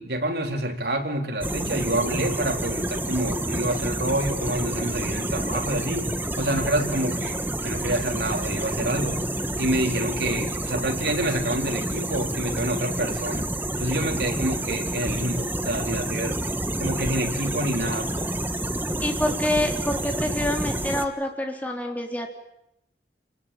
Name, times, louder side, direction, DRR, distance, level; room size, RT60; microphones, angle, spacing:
voice 1, 0.0-6.1 6.4-9.2 9.6-13.5 13.8-16.4 16.8-18.3, right 1 dB, 70° right, 3 dB, 4.0 m, -27 dB
sound 1, 1.4-21.1, right 1 dB, 10° right, 1.3 m, -29 dB
voice 2, 19.0-22.3, left 1 dB, 10° left, 2 dB, 3.6 m, -27 dB
27.0 x 20.5 x 8.8 m, 0.80 s
head